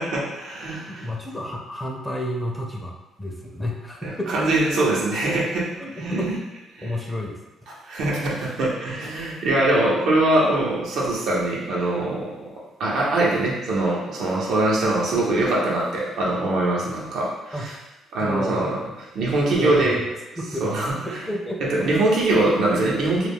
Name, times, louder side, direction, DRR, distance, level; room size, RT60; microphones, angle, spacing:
voice 1, 0.0-1.1 4.0-5.7 5.9-6.3 6.7-6.9 7.8-17.7 18.1-18.9 19.1-20.0 20.6-21.2 21.6-23.3, right 2 dB, 75° right, -4 dB, 0.7 m, -23 dB
voice 2, 0.9-4.6 5.8-6.4 6.8-7.4 17.5-17.7 18.2-18.9 19.5-20.0 20.4-21.9, equal, 10° left, 0 dB, 0.5 m, -31 dB
2.3 x 2.1 x 3.4 m, 1.0 s
cardioid pair, 75°, 0 cm